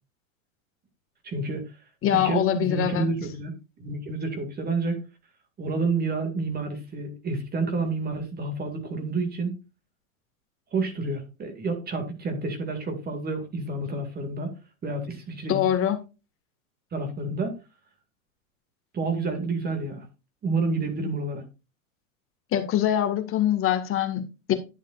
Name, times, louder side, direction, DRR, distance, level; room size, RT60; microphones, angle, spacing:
voice 1, 1.2-1.7 2.1-5.0 5.6-9.5 10.7-14.5 14.8-15.7 16.9-17.6 18.9-20.1 20.4-21.4, right 3 dB, 20° right, 2.2 m, -29 dB
voice 2, 2.0-3.1 15.5-16.0 22.5-24.5, left 11 dB, 30° left, 1.8 m, -24 dB
11.0 x 7.4 x 2.5 m
hypercardioid pair, 115°, 41 cm